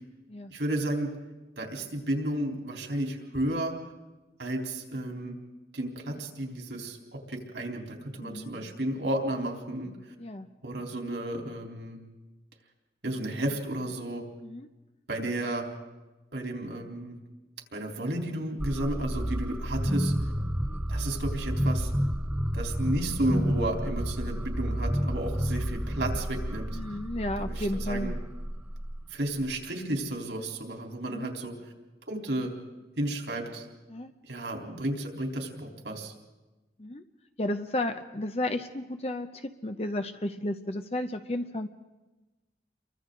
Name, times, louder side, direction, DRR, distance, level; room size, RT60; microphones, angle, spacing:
voice 1, 0.5-1.1 1.6-3.7 4.4-5.4 5.7-9.9 10.6-12.0 13.0-14.2 15.1-15.6 16.3-17.2 17.7-20.1 20.9-21.9 22.5-26.7 27.4-28.1 29.1-31.5 32.1-32.5 33.0-33.7 34.2-36.1, right 1 dB, 85° right, 1 dB, 3.6 m, -32 dB
voice 2, 8.2-8.5 10.2-10.5 14.4-14.7 19.9-20.1 26.7-28.2 31.1-31.3 33.9-34.1 36.8-37.0 37.4-41.7, left 1 dB, 35° left, 7 dB, 0.7 m, -33 dB
sound 1, 18.6-29.5, equal, 5° right, 0.7 m, -30 dB
30.0 x 23.5 x 3.9 m, 1.1 s
head